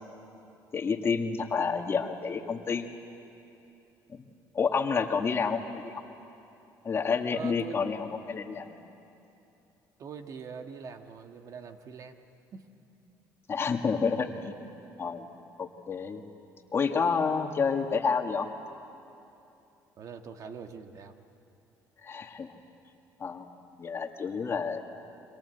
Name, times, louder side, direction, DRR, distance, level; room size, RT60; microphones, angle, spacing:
voice 1, 0.7-2.9 4.1-4.3 4.5-6.0 6.8-8.8 13.5-14.5 15.0-15.3 15.6-16.2 16.7-18.5 22.0-22.5 23.2-23.5 23.8-24.8, left 5 dB, 35° left, 4 dB, 1.9 m, -29 dB
voice 2, 7.3-7.9 10.0-12.2 12.5-12.7 20.0-21.1, right 5 dB, 55° right, 6 dB, 1.7 m, -43 dB
28.0 x 25.0 x 8.0 m, 2.8 s
cardioid pair, 100°, 7 cm